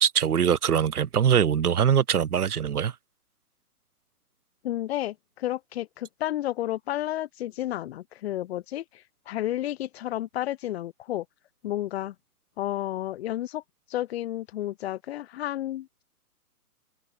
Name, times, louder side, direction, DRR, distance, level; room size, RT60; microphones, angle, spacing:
voice 1, 0.0-2.9, right 8 dB, 75° right, 1.5 m, -22 dB
voice 2, 4.6-11.2 11.6-12.1 12.6-13.6 13.9-16.0, left 13 dB, 40° left, 7.6 m, -31 dB
hypercardioid pair, 145°, 46 cm